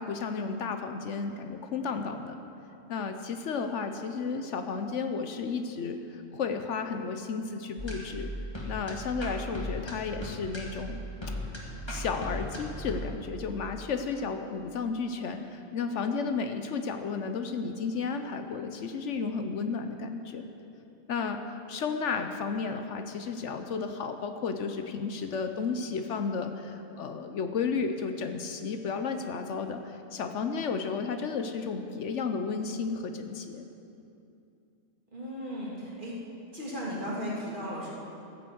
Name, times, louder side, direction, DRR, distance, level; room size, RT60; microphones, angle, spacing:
voice 1, 0.0-2.4 2.9-8.3 8.7-11.0 11.9-20.4 21.1-33.6, left 5 dB, 70° left, 7 dB, 1.1 m, -33 dB
sound 1, 7.8-12.9, equal, 20° left, 1.9 m, -37 dB
voice 2, 35.1-36.2 36.5-37.9, equal, 40° right, -5 dB, 2.9 m, -36 dB
14.0 x 7.9 x 7.8 m, 2.7 s
omnidirectional pair, 1.3 m